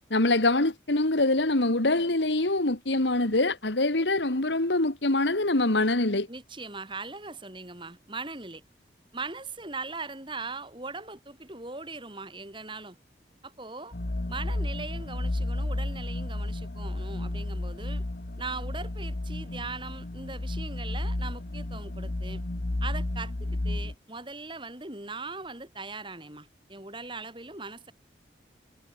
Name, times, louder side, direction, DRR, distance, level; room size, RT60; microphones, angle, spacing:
voice 1, 0.1-6.3, left 2 dB, 90° left, 2.2 m, -24 dB
voice 2, 6.3-8.6 9.1-13.0 13.4-14.0 14.3-18.0 18.4-22.4 22.8-27.9, right 3 dB, 30° right, 5.0 m, -40 dB
sound 1, 13.9-23.9, left 1 dB, 60° left, 1.1 m, -32 dB
head